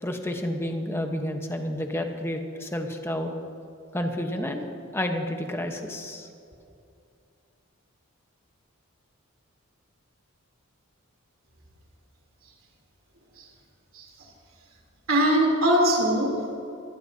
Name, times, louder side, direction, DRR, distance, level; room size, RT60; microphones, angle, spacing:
voice 1, 0.0-3.3 3.9-6.3, left 1 dB, 10° left, 4 dB, 1.0 m, -30 dB
voice 2, 15.1-16.5, right 1 dB, 70° right, -1 dB, 3.4 m, -22 dB
23.5 x 14.5 x 2.8 m, 2.5 s
head